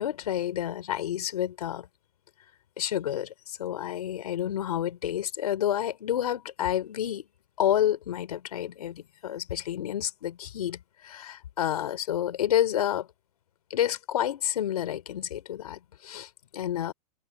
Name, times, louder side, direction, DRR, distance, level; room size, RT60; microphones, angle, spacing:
voice 1, 0.0-1.9 2.8-7.2 7.6-13.1 13.7-16.9, left 11 dB, 85° left, 3.0 m, -29 dB
hypercardioid pair, 120°, 19 cm